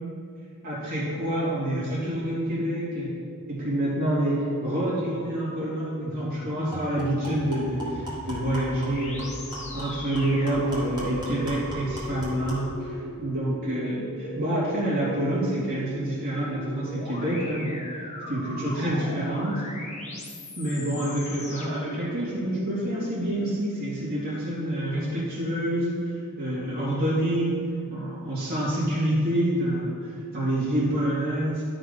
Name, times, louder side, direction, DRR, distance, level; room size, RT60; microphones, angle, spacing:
voice 1, 0.6-3.1 3.5-17.9 18.3-19.6 20.6-26.1 26.4-27.6 27.9-31.6, right 1 dB, 45° right, -8 dB, 2.3 m, -27 dB
sound 1, 5.8-5.9 6.2-6.3 6.7-12.7, right 1 dB, 20° right, 1.9 m, -38 dB
sound 2, 8.9-23.3, left 1 dB, 30° left, 1.2 m, -39 dB
12.0 x 4.0 x 5.1 m, 2.3 s
head